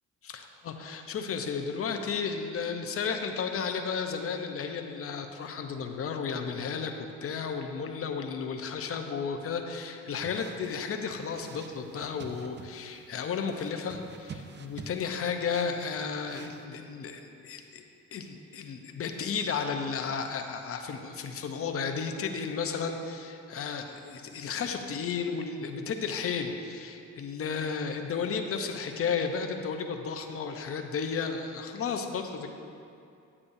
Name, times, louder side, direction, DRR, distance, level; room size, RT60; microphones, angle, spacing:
voice 1, 0.2-17.8 18.1-32.5, left 6 dB, 50° left, 5 dB, 0.7 m, -33 dB
sound 1, 10.2-16.7, right 5 dB, 35° right, 0.5 m, -48 dB
9.7 x 8.4 x 2.7 m, 2.5 s
cardioid pair, 90°, 30 cm